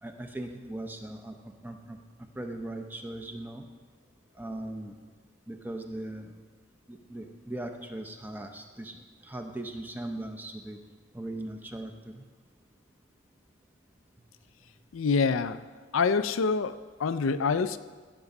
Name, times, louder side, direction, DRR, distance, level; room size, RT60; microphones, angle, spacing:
voice 1, 0.0-2.0 2.3-3.7 4.4-4.9 5.5-6.3 6.9-10.8 11.1-12.2, right 1 dB, 10° right, 5 dB, 0.7 m, -39 dB
voice 2, 14.9-15.6 15.9-17.8, left 5 dB, 85° left, 12 dB, 0.5 m, -26 dB
15.5 x 6.1 x 5.3 m, 1.4 s
head